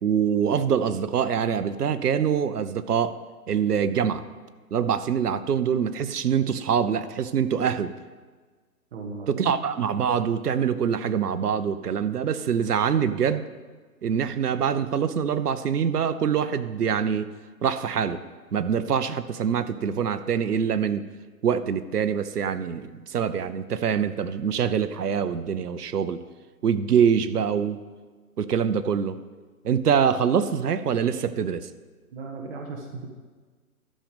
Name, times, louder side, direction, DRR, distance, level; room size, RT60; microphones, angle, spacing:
voice 1, 0.0-3.2 3.5-4.2 4.7-7.9 9.3-13.4 14.0-17.3 17.6-18.2 18.5-21.0 21.4-26.2 26.6-27.8 28.4-29.2 29.6-31.7, right 7 dB, 80° right, 13 dB, 0.8 m, -24 dB
voice 2, 8.9-9.4 32.1-33.1, right 4 dB, 40° right, 0 dB, 1.4 m, -36 dB
12.5 x 6.6 x 5.2 m, 1.4 s
hypercardioid pair, 140°, 46 cm